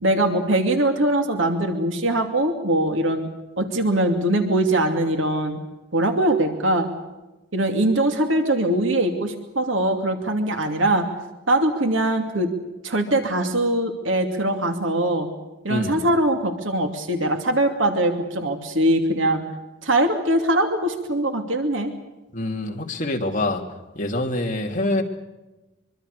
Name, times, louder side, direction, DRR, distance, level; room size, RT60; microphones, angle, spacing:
voice 1, 0.0-3.3 3.6-5.6 5.9-6.9 7.5-11.1 11.5-12.5 12.8-15.3 15.6-19.4 19.8-21.9, right 1 dB, 80° right, 5 dB, 2.7 m, -22 dB
voice 2, 15.7-16.0 22.3-23.6 23.9-25.0, left 2 dB, 40° left, 2 dB, 3.0 m, -25 dB
24.5 x 24.5 x 6.8 m, 1.1 s
head